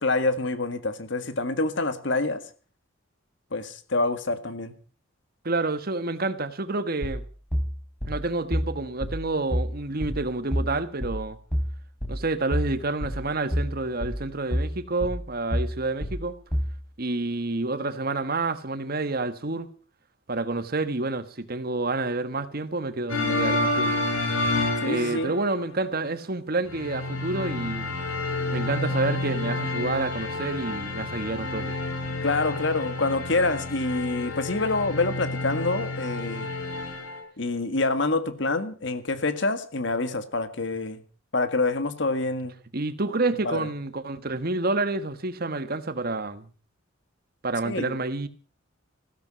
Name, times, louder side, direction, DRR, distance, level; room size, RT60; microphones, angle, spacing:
voice 1, 0.0-2.4 3.5-4.7 24.8-25.3 32.2-36.5 37.4-41.0 41.3-42.6 43.4-43.7 47.6-48.0, left 3 dB, 65° left, 1.8 m, -26 dB
voice 2, 5.4-7.2 8.1-11.4 12.1-16.4 17.0-19.7 20.3-24.0 24.8-27.9 28.5-31.8 42.7-46.5 47.4-48.3, right 2 dB, 50° right, 1.3 m, -29 dB
sound 1, 7.0-16.8, equal, 5° left, 3.5 m, -29 dB
sound 2, 23.1-25.6 26.7-37.2, left 2 dB, 90° left, 7.1 m, -29 dB
15.5 x 13.5 x 6.1 m
head